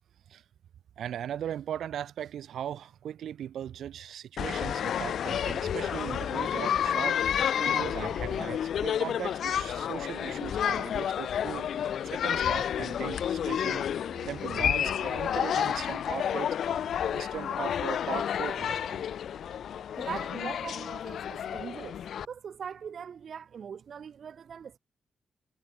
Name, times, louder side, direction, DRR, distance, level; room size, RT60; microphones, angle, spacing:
voice 1, 1.0-7.2 7.6-11.7 12.1-13.9 14.2-16.5 17.1-19.0, right 10 dB, 80° right, 0.7 m, -38 dB
sound 1, 4.4-22.3, left 9 dB, 70° left, 1.0 m, -30 dB
voice 2, 20.0-22.0 22.3-24.8, right 7 dB, 50° right, 4.0 m, -41 dB
wide cardioid pair, 150°, 0 cm